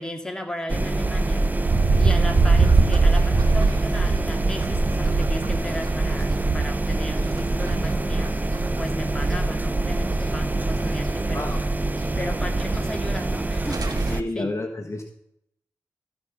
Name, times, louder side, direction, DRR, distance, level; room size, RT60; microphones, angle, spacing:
voice 1, 0.0-1.5 2.0-8.4 8.8-11.6 12.2-14.6, left 1 dB, 10° left, 3 dB, 2.0 m, -35 dB
sound 1, 0.7-14.2, right 2 dB, 25° right, 0.6 m, -25 dB
sound 2, 1.6-8.8 9.2-10.0 10.3-10.4 10.8-10.9 13.0-13.1 13.4-13.5 13.7-14.2, right 3 dB, 60° right, 1.4 m, -23 dB
voice 2, 14.1-15.0, left 2 dB, 40° left, 2 dB, 1.3 m, -30 dB
14.5 x 5.0 x 5.5 m, 0.75 s
cardioid pair, 45°, 7 cm